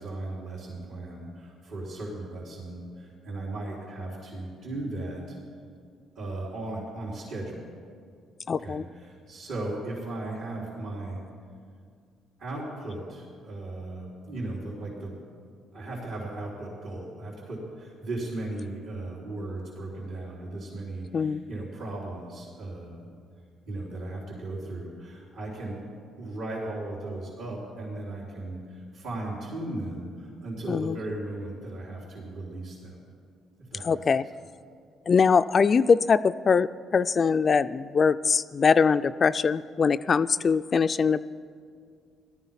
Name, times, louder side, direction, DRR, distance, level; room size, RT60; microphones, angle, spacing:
voice 1, 0.0-5.4 6.1-7.7 8.5-11.2 12.4-15.1 15.7-23.1 23.6-25.8 26.2-33.0 33.7-34.0, right 2 dB, 75° right, -7 dB, 4.0 m, -36 dB
voice 2, 8.5-8.9 21.1-21.4 30.7-31.0 33.8-34.2 35.1-41.2, left 5 dB, 40° left, 11 dB, 0.3 m, -22 dB
17.0 x 13.0 x 5.7 m, 2.2 s
cardioid pair, 90°, 0 cm